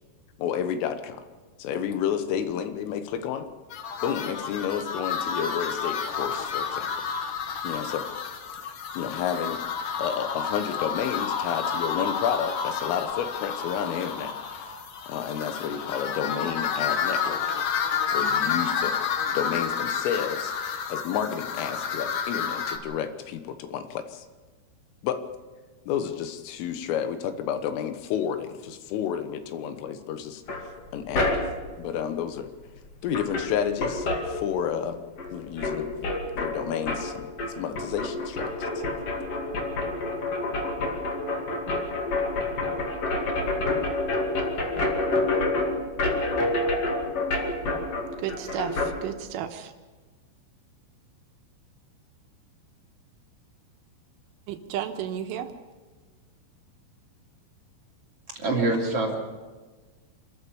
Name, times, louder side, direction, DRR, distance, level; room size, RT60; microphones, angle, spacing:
voice 1, 0.4-1.3 1.6-3.5 4.0-6.9 7.6-8.1 8.6-9.6 10.0-14.8 15.1-17.4 18.1-19.0 19.3-24.3 25.0-25.2 25.9-30.4 30.9-31.4 31.8-32.5 33.0-35.0 35.3-35.9 36.4-38.8, left 8 dB, 80° left, 9 dB, 3.8 m, -31 dB
sound 1, 3.7-22.8, left 6 dB, 65° left, 2.1 m, -30 dB
sound 2, 30.5-31.7 32.8-32.9 33.1-34.9 35.2-48.9, left 2 dB, 40° left, 2.4 m, -28 dB
voice 2, 48.2-49.7 54.5-55.5, right 10 dB, 80° right, 6 dB, 3.6 m, -33 dB
voice 3, 58.3-59.1, right 2 dB, 35° right, -1 dB, 3.0 m, -25 dB
27.0 x 14.0 x 7.1 m, 1.3 s
omnidirectional pair, 5.8 m